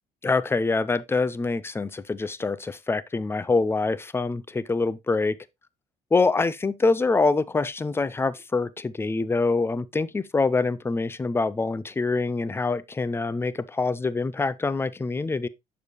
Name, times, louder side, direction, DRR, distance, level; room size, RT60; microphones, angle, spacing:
voice 1, 0.2-5.4 6.1-15.5, left 3 dB, 15° left, 0.5 m, -25 dB
7.1 x 6.6 x 3.0 m
cardioid pair, 110°, 17 cm